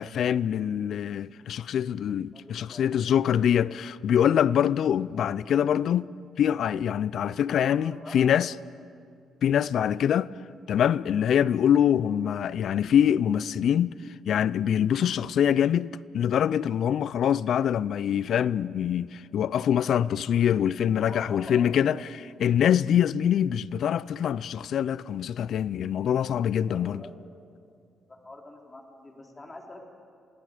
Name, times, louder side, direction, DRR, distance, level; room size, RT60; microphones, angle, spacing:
voice 1, 0.0-6.1 6.4-8.5 9.4-10.3 10.7-13.9 14.3-22.1 22.4-27.0, left 9 dB, 65° left, 0.4 m, -24 dB
voice 2, 2.3-3.0 5.2-5.5 7.6-8.3 21.0-21.9 26.7-27.2 28.1-29.8, left 2 dB, 20° left, 3.5 m, -44 dB
27.5 x 18.5 x 5.1 m
cardioid pair, 90°, 0 cm